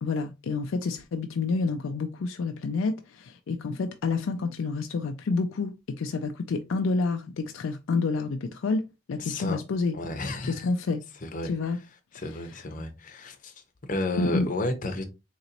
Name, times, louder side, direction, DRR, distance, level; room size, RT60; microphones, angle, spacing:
voice 1, 0.0-8.8 9.1-10.0 10.4-11.0 11.5-11.8 14.2-14.5, left 4 dB, 70° left, 0.4 m, -28 dB
voice 2, 9.2-9.6 9.9-10.7 11.2-11.8 12.1-13.5 13.9-15.0, left 2 dB, 40° left, 0.7 m, -32 dB
4.0 x 3.0 x 2.8 m
head